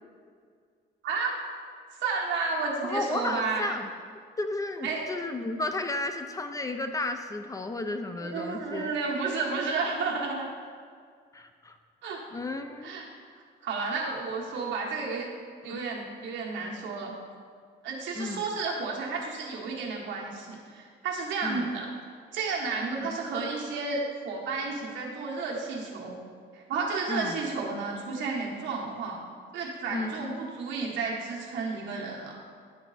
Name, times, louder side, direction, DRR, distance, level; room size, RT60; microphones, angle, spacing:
voice 1, 2.0-3.7 4.8-5.0 8.2-10.5 12.0-12.2 12.8-13.1 13.6-15.3 15.6-17.1 17.8-21.9 22.3-26.2 26.5-29.2 29.5-32.4, right 4 dB, 90° right, -2 dB, 1.4 m, -32 dB
voice 2, 2.8-3.9 4.4-8.9 11.3-11.8 12.3-12.9 15.7-15.8 18.2-18.4 21.4-21.7 23.0-23.2 27.1-27.4 29.9-30.3, left 2 dB, 20° left, 7 dB, 0.3 m, -33 dB
10.0 x 3.9 x 4.1 m, 2.1 s
cardioid pair, 150°, 19 cm